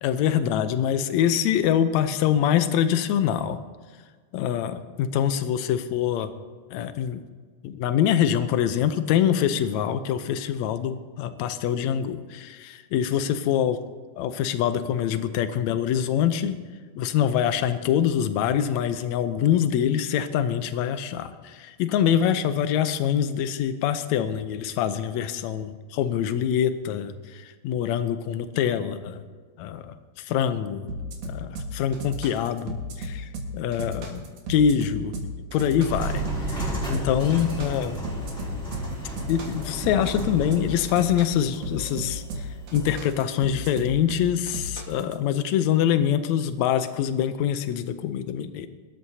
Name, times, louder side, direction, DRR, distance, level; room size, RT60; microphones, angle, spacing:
voice 1, 0.0-3.6 4.3-6.3 6.7-7.2 7.6-13.8 14.2-16.6 17.0-29.2 29.6-30.9 31.2-35.2 35.5-38.0 39.3-42.5 42.7-48.7, left 9 dB, 75° left, 10 dB, 1.8 m, -25 dB
sound 1, 30.9-45.1, equal, 70° right, 3.0 m, -34 dB
sound 2, 35.8-43.1, right 1 dB, 20° left, 4.7 m, -33 dB
23.0 x 13.0 x 2.8 m, 1.5 s
omnidirectional pair, 3.7 m